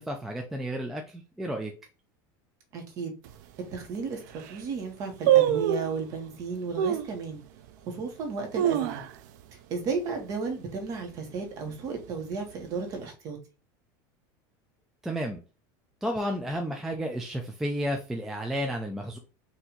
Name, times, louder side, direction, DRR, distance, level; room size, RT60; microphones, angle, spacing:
voice 1, 0.0-1.7 15.0-15.4 16.0-19.2, equal, 5° right, 0.3 m, -32 dB
voice 2, 2.7-3.1 3.7-4.2 4.5-7.4 7.9-9.0 9.7-13.4, right 4 dB, 35° right, 1.2 m, -34 dB
sound 1, 3.2-3.3 3.9-4.0 4.3-4.6 5.3-6.0 6.8-7.2 7.7-7.8 8.3-9.4 9.7-9.8 10.2-10.5 10.9-11.3 11.9-12.7 12.9-13.0, right 11 dB, 65° right, 0.5 m, -25 dB
4.4 x 2.6 x 3.8 m
supercardioid pair, 170°, 11 cm